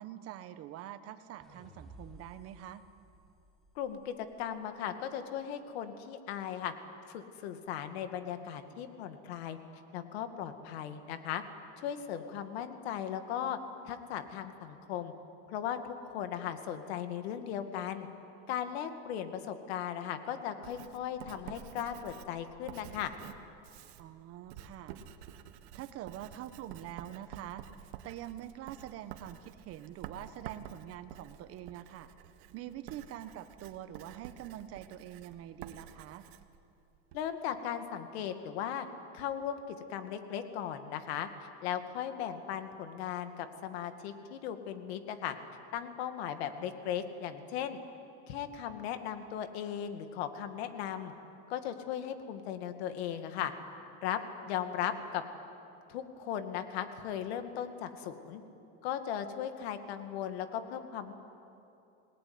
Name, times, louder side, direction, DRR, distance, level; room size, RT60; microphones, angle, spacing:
voice 1, 0.0-2.8 24.0-24.9 25.7-27.6 28.0-32.1 32.5-36.2, right 12 dB, 50° right, 11 dB, 1.4 m, -45 dB
sound 1, 1.4-4.7, right 1 dB, ahead, 3.4 m, -56 dB
voice 2, 3.8-6.7 7.1-9.6 9.9-11.4 11.8-13.6 13.9-15.1 15.5-18.1 18.5-23.1 37.1-38.9 39.1-41.3 41.6-45.4 45.7-47.8 48.3-51.1 51.5-53.5 54.0-54.2 54.5-55.2 55.9-58.4 58.8-61.1, left 9 dB, 90° left, 7 dB, 2.2 m, -37 dB
Writing, 20.6-37.3, right 10 dB, 80° right, 1.6 m, -50 dB
27.5 x 19.5 x 9.6 m, 2.7 s
supercardioid pair, 140°, 31 cm